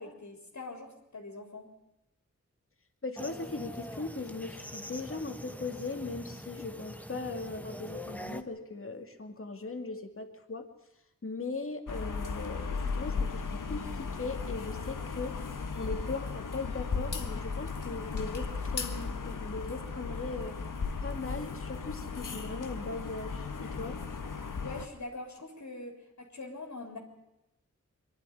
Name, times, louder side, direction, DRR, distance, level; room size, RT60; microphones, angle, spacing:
voice 1, 0.0-1.6 24.6-27.0, left 2 dB, 65° left, 1 dB, 3.5 m, -43 dB
voice 2, 3.0-10.7 11.2-15.4 15.7-20.6 21.0-24.0, left 3 dB, 45° left, 5 dB, 2.3 m, -39 dB
sound 1, 3.2-8.4, left 1 dB, 5° left, 1.3 m, -43 dB
sound 2, 11.9-24.9, left 4 dB, 85° left, 1.6 m, -36 dB
23.5 x 11.5 x 10.0 m, 0.92 s
wide cardioid pair, 60°, 31 cm